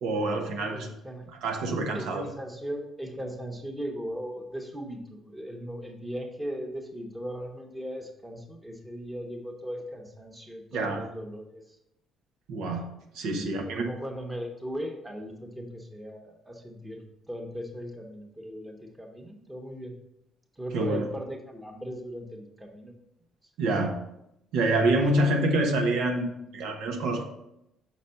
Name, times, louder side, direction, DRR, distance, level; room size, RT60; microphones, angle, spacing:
voice 1, 0.0-0.9 1.4-2.2 10.7-11.0 12.5-12.9 13.1-13.9 20.7-21.1 23.6-23.9 24.5-27.2, right 2 dB, 85° right, 3 dB, 1.0 m, -26 dB
voice 2, 0.7-1.3 1.9-11.8 13.3-19.9 20.6-23.0, equal, 10° right, 2 dB, 1.0 m, -38 dB
6.0 x 4.1 x 5.5 m, 0.83 s
cardioid pair, 125°, 0 cm